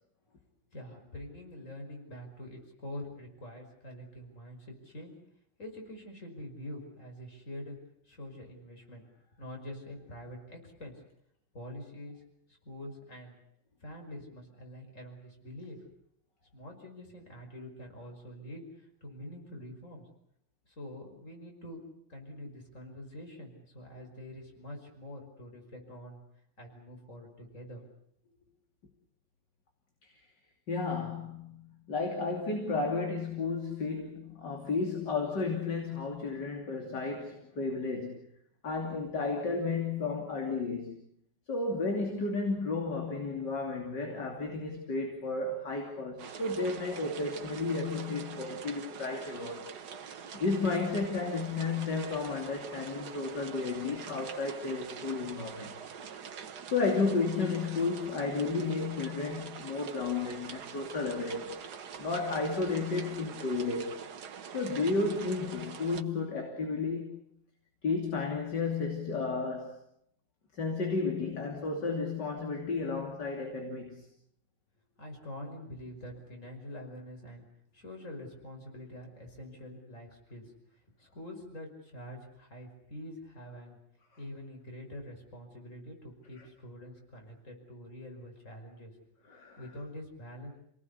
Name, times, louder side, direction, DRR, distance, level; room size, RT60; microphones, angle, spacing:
voice 1, 0.7-5.2 5.6-7.8 8.1-9.1 9.4-10.9 11.5-12.2 12.6-13.4 13.8-15.8 16.5-18.7 19.0-20.1 20.7-21.8 22.1-26.2 26.6-27.8 28.2-28.3 75.0-77.5 77.7-80.5 81.0-83.8 84.2-88.9 89.6-90.5, left 1 dB, 40° left, 3 dB, 5.9 m, -45 dB
voice 2, 30.7-38.3 38.6-41.0 41.5-49.6 50.3-55.7 56.7-61.6 62.0-64.0 64.5-67.2 67.8-69.8 70.5-74.1 86.4-86.5 89.3-89.6, left 4 dB, 65° left, 2 dB, 3.5 m, -33 dB
sound 1, 46.2-66.0, right 7 dB, 60° right, 1.7 m, -45 dB
29.5 x 18.5 x 8.3 m, 0.72 s
omnidirectional pair, 2.0 m